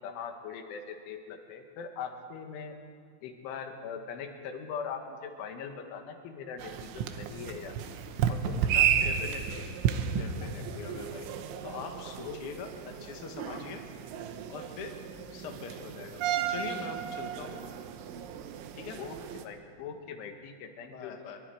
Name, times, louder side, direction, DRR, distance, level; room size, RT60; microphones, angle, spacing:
voice 1, 0.0-2.8 3.2-7.9 8.3-9.3 12.2-12.4 13.5-13.6 19.0-21.1, left 6 dB, 85° left, 5 dB, 4.0 m, -41 dB
sound 1, 6.6-19.4, right 8 dB, 90° right, 3.4 m, -33 dB
voice 2, 9.0-9.7 10.1-11.2 11.6-13.8 14.5-14.9 15.3-16.2 16.5-17.6 18.7-19.0 20.9-21.4, left 5 dB, 50° left, 3 dB, 1.7 m, -42 dB
26.0 x 22.5 x 4.8 m, 2.2 s
omnidirectional pair, 5.4 m